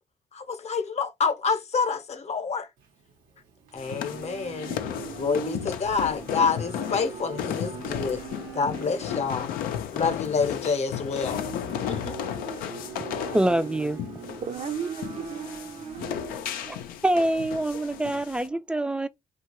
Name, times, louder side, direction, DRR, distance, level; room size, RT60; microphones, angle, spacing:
voice 1, 0.3-2.7 3.7-4.7 5.1-8.2 8.5-9.5 9.9-11.4 11.9-12.2, left 5 dB, 50° left, 0.8 m, -27 dB
Livestock farm animals working animals, 2.8-17.5, right 8 dB, 90° right, 0.9 m, -41 dB
sound 1, 3.8-18.5, left 10 dB, 85° left, 0.5 m, -34 dB
voice 2, 13.3-14.0 16.7-19.1, right 1 dB, 5° right, 0.4 m, -25 dB
voice 3, 14.4-16.5, right 6 dB, 50° right, 0.6 m, -36 dB
2.8 x 2.3 x 3.0 m
supercardioid pair, 70°, 14 cm